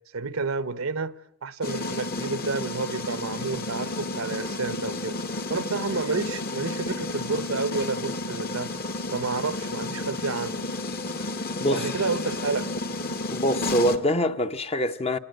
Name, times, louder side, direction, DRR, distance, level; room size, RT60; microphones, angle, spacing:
voice 1, 0.1-1.1 1.4-5.2 5.5-8.7 9.1-10.6 11.7-12.7, right 4 dB, 70° right, 0.9 m, -30 dB
sound 1, 1.6-14.0, left 2 dB, 45° left, 1.4 m, -32 dB
voice 2, 11.6-12.2 13.3-15.2, equal, 30° left, 0.9 m, -25 dB
28.0 x 18.5 x 7.9 m
head